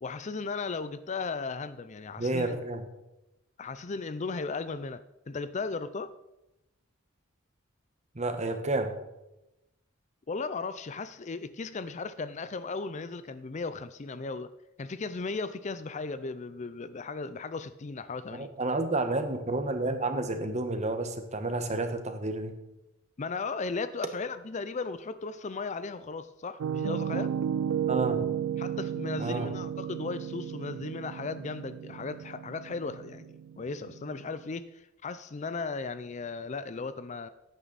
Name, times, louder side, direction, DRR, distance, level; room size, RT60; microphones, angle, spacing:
voice 1, 0.0-2.6 3.6-6.1 10.3-14.5 14.8-18.5 23.2-27.3 28.6-33.3 33.6-37.3, left 4 dB, 35° left, 12 dB, 0.4 m, -36 dB
voice 2, 2.2-2.8 8.1-9.0 18.3-22.6 27.8-28.3 29.2-29.5, right 2 dB, 35° right, 7 dB, 1.3 m, -30 dB
Piano, 26.6-34.5, right 9 dB, 85° right, 0.3 m, -33 dB
16.5 x 9.3 x 4.1 m, 0.95 s
head